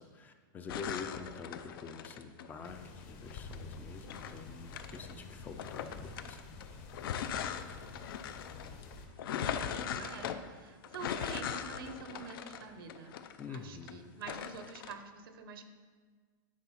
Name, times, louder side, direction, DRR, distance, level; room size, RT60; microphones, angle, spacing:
voice 1, 0.0-6.4 13.4-14.1, left 5 dB, 15° left, 7 dB, 0.3 m, -46 dB
sound 1, 0.7-2.7 3.3-5.1 5.6-13.9 14.2-14.9, left 8 dB, 80° left, 0.5 m, -40 dB
sound 2, 2.6-9.1, left 3 dB, 45° left, 1.0 m, -49 dB
voice 2, 9.3-13.2 13.5-15.6, right 5 dB, 90° right, 8 dB, 0.8 m, -47 dB
8.6 x 3.9 x 5.6 m, 1.5 s
supercardioid pair, 165°, 12 cm